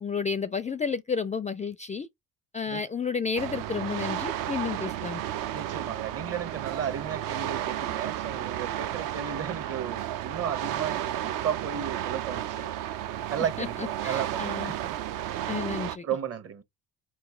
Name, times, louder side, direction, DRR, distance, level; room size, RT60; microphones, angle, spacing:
voice 1, 0.0-2.1 2.5-5.2 13.6-13.7 14.0-14.7 15.5-16.0, left 5 dB, 20° left, 0.4 m, -31 dB
sound 1, 3.4-16.0, right 12 dB, 55° right, 0.5 m, -33 dB
voice 2, 5.5-12.7 13.3-14.9 16.0-16.6, right 8 dB, 35° right, 0.9 m, -34 dB
4.0 x 3.1 x 3.6 m
hypercardioid pair, 55°, 40 cm